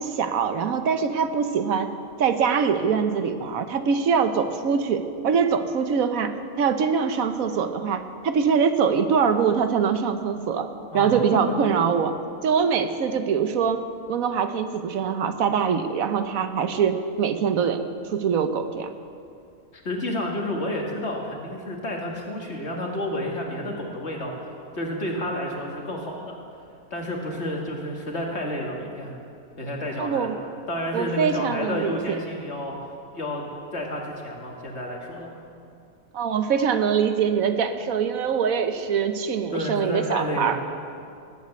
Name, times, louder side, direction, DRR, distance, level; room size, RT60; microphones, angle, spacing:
voice 1, 0.0-1.9 2.2-6.3 6.6-12.1 12.4-13.8 14.1-17.8 18.1-18.9 30.0-30.4 30.9-32.2 36.1-40.6, right 6 dB, 80° right, 9 dB, 1.3 m, -23 dB
voice 2, 19.7-24.3 24.7-26.4 26.9-29.2 29.6-30.3 30.7-32.7 33.1-33.4 33.7-35.4 39.5-40.6, left 1 dB, 55° left, 0 dB, 2.3 m, -30 dB
19.0 x 8.3 x 8.0 m, 2.4 s
omnidirectional pair, 1.4 m